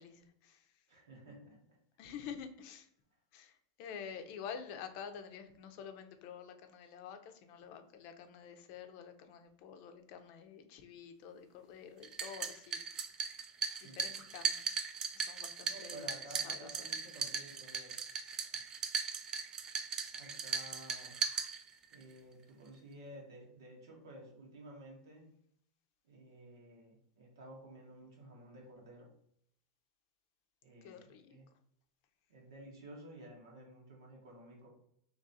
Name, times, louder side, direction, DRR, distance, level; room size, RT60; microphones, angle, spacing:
voice 1, 0.0-0.8 2.0-2.9 3.3-12.9 13.8-14.8 15.1-16.1 16.4-17.0 19.7-20.0 30.8-31.4, left 7 dB, 55° left, 7 dB, 0.5 m, -49 dB
voice 2, 0.9-1.6 13.8-14.1 15.6-18.0 18.4-18.7 20.1-21.1 21.9-25.3 26.0-29.1 30.6-31.5 32.3-34.7, right 1 dB, 85° right, -1 dB, 1.4 m, -53 dB
sound 1, 12.0-22.0, right 6 dB, 30° right, 0.4 m, -38 dB
3.0 x 2.5 x 4.1 m, 0.71 s
supercardioid pair, 125°, 2 cm